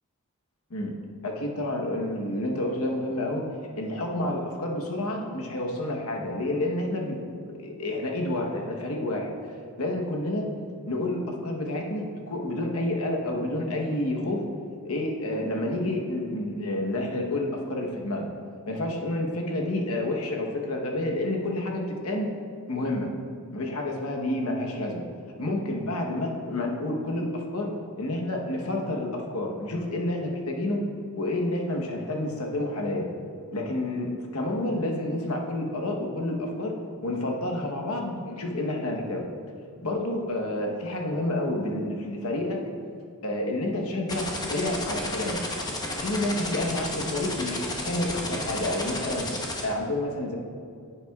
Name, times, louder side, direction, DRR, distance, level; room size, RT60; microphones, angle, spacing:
voice 1, 1.2-3.4 3.8-9.3 9.8-10.5 10.8-14.4 14.8-18.3 18.7-22.3 22.7-23.1 23.5-25.0 25.4-27.7 28.0-30.8 31.1-33.1 33.5-36.7 37.0-39.3 39.8-42.6 43.2-45.4 46.0-47.6 47.8-49.3 49.6-50.4, left 1 dB, 85° left, 0 dB, 1.1 m, -29 dB
sound 1, 44.1-49.6, left 2 dB, 20° left, 0.9 m, -32 dB
10.5 x 7.6 x 2.4 m, 2.4 s
head